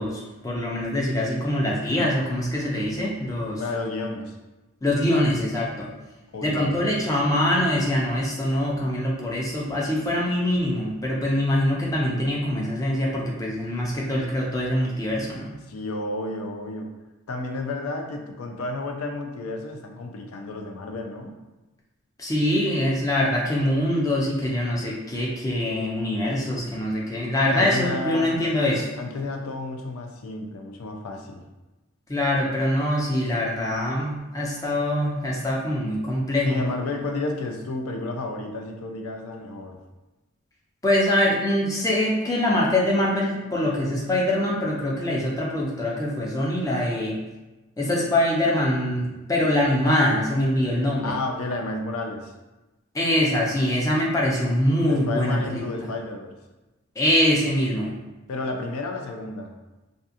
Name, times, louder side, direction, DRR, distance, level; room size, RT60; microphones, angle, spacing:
voice 1, 0.0-3.6 4.8-5.9 6.4-15.6 22.2-28.9 32.1-36.6 40.8-47.2 47.8-51.1 52.9-55.9 57.0-57.9, left 1 dB, 15° left, -4 dB, 0.4 m, -24 dB
voice 2, 3.6-4.4 6.3-6.8 15.7-16.9 17.3-21.4 27.5-28.4 29.0-31.4 36.4-39.8 51.0-52.3 54.9-56.3 58.3-59.5, left 2 dB, 85° left, 4 dB, 0.4 m, -31 dB
2.6 x 2.5 x 2.4 m, 1.1 s
head